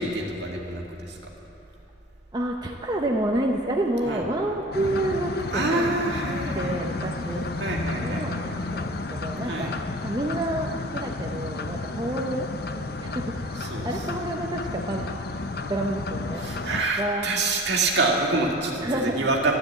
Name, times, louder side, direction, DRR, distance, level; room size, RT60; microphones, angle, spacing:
voice 1, 0.0-1.3 4.0-4.3 5.5-6.9 7.6-8.3 9.4-9.7 13.6-13.9 16.4-19.6, right 2 dB, 60° right, 0 dB, 2.0 m, -26 dB
voice 2, 2.3-5.9 6.5-7.4 8.0-12.5 13.0-13.5 13.8-15.0 15.7-16.4 17.0-17.3 18.8-19.3, right 1 dB, 20° right, 0 dB, 0.7 m, -29 dB
sound 1, 4.7-16.8, left 3 dB, 50° left, 0.6 m, -32 dB
12.0 x 12.0 x 8.4 m, 2.9 s
head